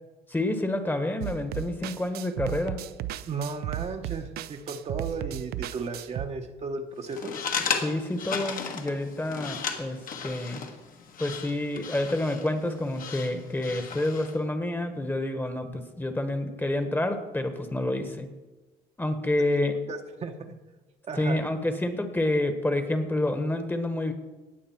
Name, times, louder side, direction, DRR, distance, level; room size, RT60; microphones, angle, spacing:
voice 1, 0.3-2.8 7.8-10.6 11.2-18.3 19.0-19.7 21.1-24.1, left 1 dB, 10° left, 8 dB, 1.3 m, -28 dB
sound 1, 1.2-6.3, right 13 dB, 70° right, 0.5 m, -35 dB
voice 2, 3.3-7.3 19.9-20.5 21.1-21.4, right 4 dB, 40° right, 4 dB, 1.0 m, -35 dB
sound 2, 7.0-14.4, left 6 dB, 55° left, 1.5 m, -35 dB
18.5 x 6.5 x 4.5 m, 1.1 s
cardioid pair, 110°, 17 cm